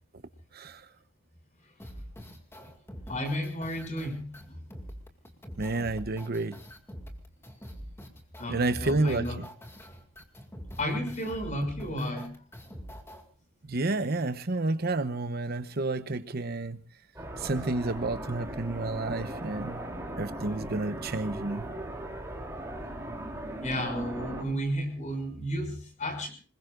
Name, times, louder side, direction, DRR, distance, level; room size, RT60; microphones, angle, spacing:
sound 1, 1.8-13.2, equal, 15° left, 2.2 m, -44 dB
voice 1, 3.1-4.5 8.4-9.4 10.8-12.3 23.6-26.3, equal, 40° left, 5 dB, 6.2 m, -32 dB
voice 2, 5.6-6.6 8.5-9.5 13.7-16.8 17.4-19.8 20.2-21.7, right 2 dB, 55° right, 11 dB, 0.9 m, -30 dB
sound 2, 17.2-24.4, right 1 dB, 15° right, 3.5 m, -38 dB
26.0 x 21.0 x 2.5 m, 0.36 s
head